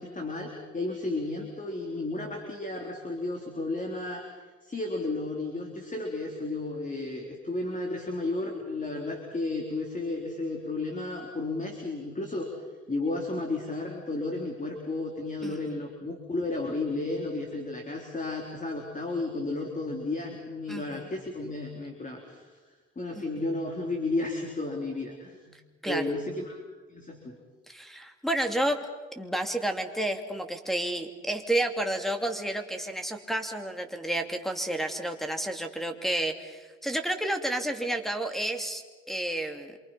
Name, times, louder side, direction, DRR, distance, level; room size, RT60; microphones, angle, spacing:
voice 1, 0.0-4.3 4.6-12.5 12.9-22.4 23.0-25.6 25.8-26.6 26.9-27.3, left 2 dB, 25° left, 2 dB, 3.8 m, -33 dB
voice 2, 15.4-15.8 20.7-21.1 23.2-23.3 25.8-26.1 27.7-28.8 29.2-39.8, right 1 dB, ahead, 6 dB, 2.7 m, -31 dB
27.5 x 24.0 x 5.8 m, 1.3 s
cardioid pair, 90°, 30 cm